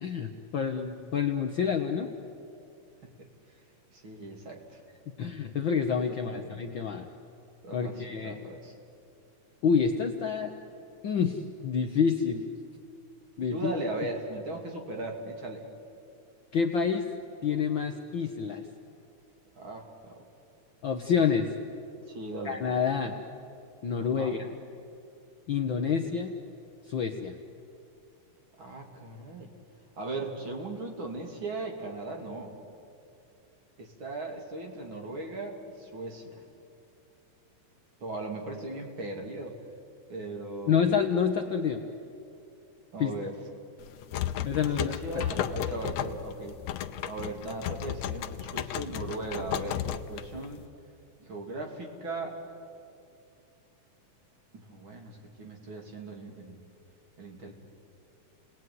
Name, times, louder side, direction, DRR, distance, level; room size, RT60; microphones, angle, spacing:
voice 1, 0.0-2.1 5.2-7.1 7.7-8.4 9.6-10.5 11.0-12.4 13.4-13.7 16.5-17.1 17.4-18.7 20.8-21.5 22.4-23.2 23.8-24.4 25.5-26.3 26.9-27.4 40.7-41.8 43.0-43.1 44.4-45.2, left 6 dB, 90° left, 4 dB, 1.0 m, -28 dB
voice 2, 3.9-4.8 6.3-6.5 7.6-8.7 13.5-15.6 19.6-20.1 22.0-22.6 24.0-24.4 28.6-29.5 30.0-32.5 33.8-36.4 38.0-39.6 40.1-40.8 42.9-43.3 44.8-46.6 47.1-50.7 51.2-52.4 54.5-56.6 57.2-57.5, right 2 dB, 40° right, 2 dB, 3.1 m, -38 dB
sound 1, 43.8-50.6, left 11 dB, 70° left, 1.7 m, -34 dB
30.0 x 19.5 x 9.5 m, 2.6 s
omnidirectional pair, 3.8 m